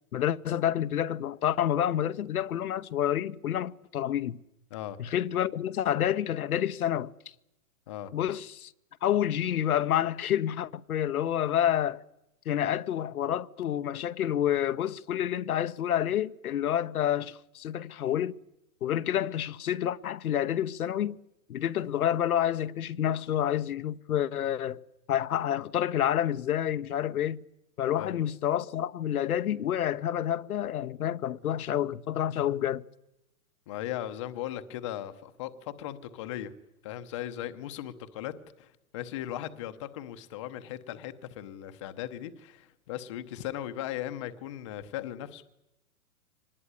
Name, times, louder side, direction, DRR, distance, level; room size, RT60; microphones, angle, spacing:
voice 1, 0.1-4.4 5.0-7.1 8.1-8.7 9.0-12.0 12.5-18.4 18.8-21.2 21.5-27.4 27.8-32.8, left 10 dB, 75° left, 1.0 m, -28 dB
voice 2, 33.7-36.5 36.8-45.4, left 12 dB, 20° left, 0.8 m, -38 dB
24.5 x 19.5 x 9.9 m
hypercardioid pair, 170°, 44 cm